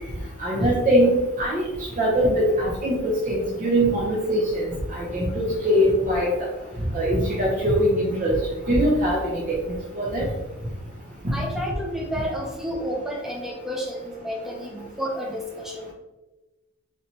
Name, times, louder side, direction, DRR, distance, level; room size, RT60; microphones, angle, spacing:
voice 1, 0.4-1.7 2.0-3.0 3.3-4.6 4.9-6.3 6.9-8.4 8.7-9.6 9.9-10.3, equal, 35° right, -5 dB, 0.7 m, -22 dB
voice 2, 11.3-15.9, equal, ahead, -2 dB, 0.7 m, -31 dB
4.2 x 3.2 x 2.9 m, 1.1 s
head